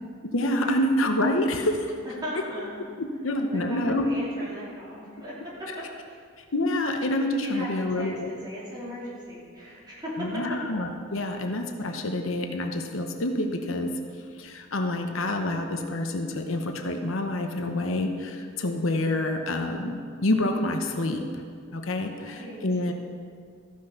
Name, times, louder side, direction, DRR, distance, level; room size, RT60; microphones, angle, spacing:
voice 1, 0.3-2.0 3.0-4.1 6.5-8.3 10.2-13.9 14.4-21.2 21.7-22.9, left 1 dB, 75° left, 4 dB, 0.9 m, -27 dB
voice 2, 2.2-2.8 3.5-6.2 7.4-10.6 22.0-22.7, equal, 20° right, -8 dB, 3.4 m, -37 dB
14.0 x 6.2 x 5.8 m, 2.1 s
head